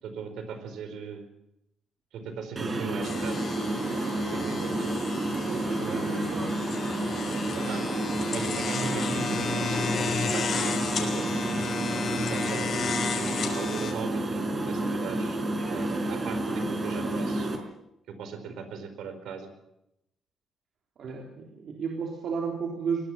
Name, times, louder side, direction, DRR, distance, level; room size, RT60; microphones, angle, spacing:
voice 1, 0.0-1.3 2.1-3.5 4.3-4.9 5.8-6.3 7.5-7.9 8.3-11.6 12.1-12.7 13.5-15.4 15.7-17.5 18.1-19.5, right 6 dB, 80° right, 9 dB, 4.6 m, -39 dB
sound 1, 2.6-17.6, right 2 dB, 35° right, 5.5 m, -30 dB
sound 2, 3.0-13.9, left 5 dB, 50° left, 5.1 m, -33 dB
voice 2, 5.3-6.5 21.0-23.0, right 5 dB, 60° right, 1 dB, 3.7 m, -33 dB
22.0 x 18.0 x 7.5 m, 0.82 s
cardioid pair, 90°, 0 cm